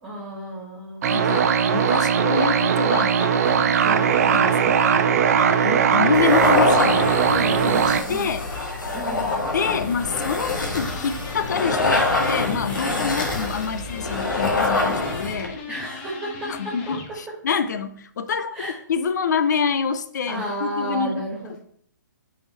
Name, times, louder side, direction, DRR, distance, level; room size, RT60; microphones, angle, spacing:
voice 1, 0.0-1.2 3.8-4.7 7.3-8.4 8.9-9.5 12.8-13.2 15.7-16.9 18.5-18.7 20.3-21.6, right 1 dB, 10° right, -5 dB, 2.2 m, -32 dB
sound 1, 1.0-8.0, right 7 dB, 50° right, 0.7 m, -19 dB
voice 2, 1.1-3.8 4.3-4.8 5.1-7.0 7.6-8.5 9.5-15.6 16.5-21.2 21.5-21.6, left 6 dB, 65° left, 11 dB, 0.7 m, -27 dB
sound 2, 6.1-15.5, left 3 dB, 85° left, 1.8 m, -25 dB
sound 3, 10.8-17.2, left 4 dB, 35° left, 1.2 m, -40 dB
5.5 x 5.0 x 4.6 m, 0.63 s
hypercardioid pair, 135°, 10 cm